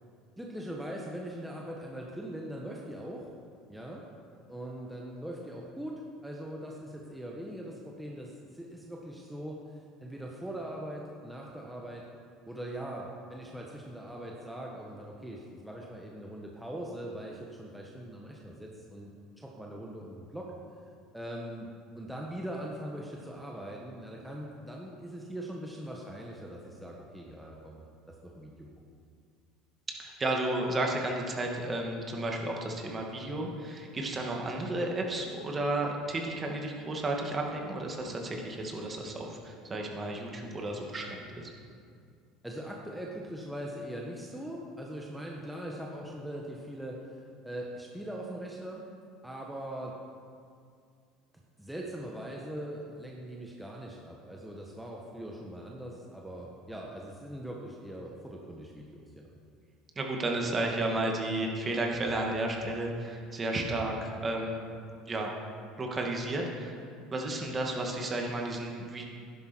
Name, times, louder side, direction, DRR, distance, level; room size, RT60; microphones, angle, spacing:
voice 1, 0.4-3.3 3.7-4.0 4.5-9.6 10.0-12.1 12.5-20.5 21.1-21.7 21.9-28.5 42.4-48.9 49.2-50.0 51.6-59.3, right 1 dB, 5° right, -2 dB, 1.4 m, -41 dB
voice 2, 30.0-41.5 60.0-64.6 65.1-65.3 65.8-66.8 67.1-69.0, right 2 dB, 30° right, 1 dB, 2.2 m, -32 dB
11.0 x 11.0 x 4.7 m, 2.3 s
hypercardioid pair, 75°, 0 cm